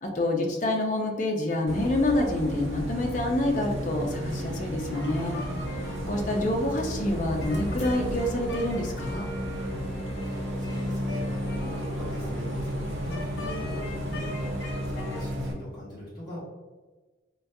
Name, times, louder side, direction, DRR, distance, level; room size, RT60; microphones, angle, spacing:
voice 1, 0.0-5.4 6.1-9.3, left 1 dB, 40° left, 1 dB, 0.5 m, -27 dB
Bus, 1.7-15.5, equal, 85° right, 0.6 m, -33 dB
sound 1, 4.9-15.3, left 1 dB, 75° left, 0.8 m, -41 dB
voice 2, 9.5-16.4, left 1 dB, 25° left, -9 dB, 1.2 m, -41 dB
3.8 x 2.2 x 2.6 m, 1.3 s
head